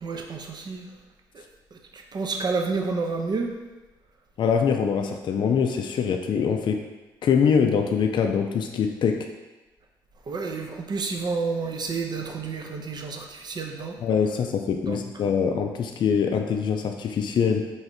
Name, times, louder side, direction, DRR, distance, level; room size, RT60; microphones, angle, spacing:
voice 1, 0.0-0.9 1.3-3.5 10.3-14.0 14.9-15.0, right 4 dB, 45° right, 2 dB, 0.6 m, -30 dB
voice 2, 4.4-6.9 7.2-9.3 14.0-17.7, left 6 dB, 55° left, 5 dB, 0.3 m, -23 dB
3.1 x 2.5 x 4.3 m, 1.2 s
supercardioid pair, 55°, 9 cm